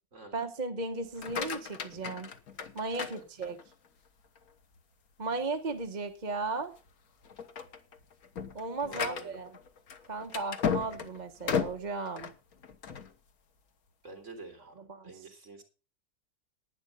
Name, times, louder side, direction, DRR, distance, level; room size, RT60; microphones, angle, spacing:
voice 1, 0.3-2.3 2.7-3.6 5.2-6.7 8.5-9.6 10.1-12.3 14.6-15.3, right 3 dB, 30° right, 5 dB, 1.1 m, -36 dB
sound 1, 1.0-3.9 4.4-4.8 5.3-5.4 5.8-5.9 6.6-6.9 7.2-13.1, left 7 dB, 75° left, 1.7 m, -35 dB
voice 2, 3.1-3.5 8.8-9.4 14.0-14.7 15.0-15.6, right 3 dB, 50° right, 3 dB, 3.5 m, -48 dB
11.5 x 9.7 x 5.4 m, 0.34 s
omnidirectional pair, 1.6 m